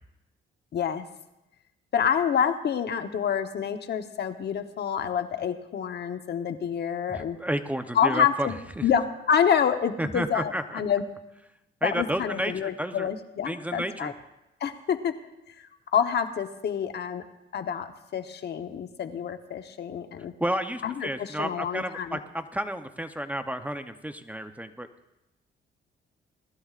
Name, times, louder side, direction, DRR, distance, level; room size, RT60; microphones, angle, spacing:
voice 1, 0.7-1.1 1.9-7.4 7.9-8.6 8.8-11.0 11.8-14.1 14.6-15.1 15.6-17.2 17.5-20.3 20.8-22.2, left 8 dB, 55° left, 7 dB, 1.0 m, -27 dB
voice 2, 7.1-8.5 8.8-8.9 10.0-10.8 11.8-13.1 13.5-14.1 20.4-24.9, right 1 dB, 5° right, 8 dB, 0.7 m, -31 dB
20.0 x 13.0 x 2.5 m, 0.92 s
cardioid pair, 90°, 20 cm